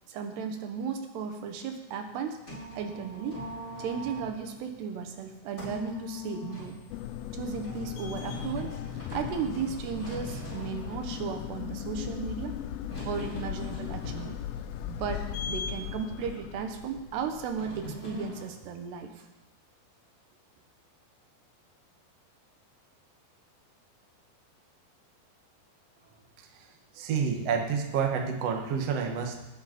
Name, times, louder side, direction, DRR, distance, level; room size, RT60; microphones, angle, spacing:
voice 1, 0.1-2.4 2.8-3.4 3.8-6.8 7.3-12.6 13.0-14.4 14.9-19.3, right 6 dB, 75° right, 5 dB, 3.2 m, -35 dB
sound 1, 2.0-18.4, equal, 15° left, 6.6 m, -45 dB
sound 2, 6.9-17.9, left 10 dB, 85° left, 2.7 m, -37 dB
voice 2, 27.0-29.3, right 6 dB, 60° right, 2 dB, 1.7 m, -29 dB
19.5 x 8.0 x 5.3 m, 1.0 s
omnidirectional pair, 5.0 m